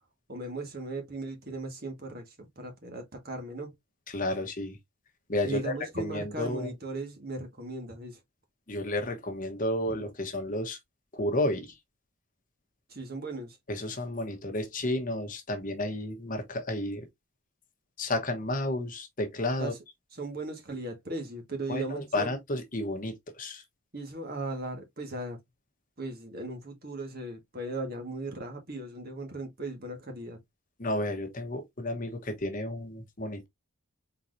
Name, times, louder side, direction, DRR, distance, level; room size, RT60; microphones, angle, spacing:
voice 1, 0.3-3.7 5.4-8.2 10.0-10.1 12.9-13.6 19.6-19.8 20.1-22.3 23.9-25.4 26.0-30.4, right 2 dB, 45° right, 1.6 m, -37 dB
voice 2, 4.1-4.8 5.3-6.7 8.7-10.8 11.1-11.8 13.7-17.1 18.0-19.7 21.7-23.6 30.8-33.5, left 1 dB, 40° left, 1.0 m, -32 dB
4.4 x 3.9 x 2.6 m
head